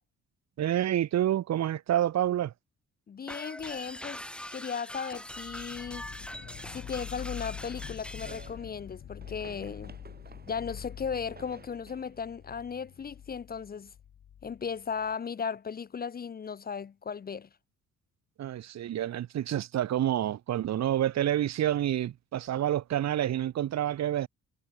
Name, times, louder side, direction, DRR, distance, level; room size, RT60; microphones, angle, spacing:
voice 1, 0.6-2.5 18.4-24.3, right 11 dB, 60° right, 1.1 m, -28 dB
voice 2, 3.1-4.2 4.5-6.0 6.7-10.0 10.5-13.9 14.4-17.5, left 6 dB, 30° left, 0.6 m, -36 dB
sound 1, 3.3-8.5, left 1 dB, 5° left, 1.9 m, -43 dB
sound 2, 5.3-15.1, left 9 dB, 55° left, 1.4 m, -45 dB
sound 3, 6.3-13.4, right 5 dB, 30° right, 4.6 m, -55 dB
cardioid pair, 90°, 30 cm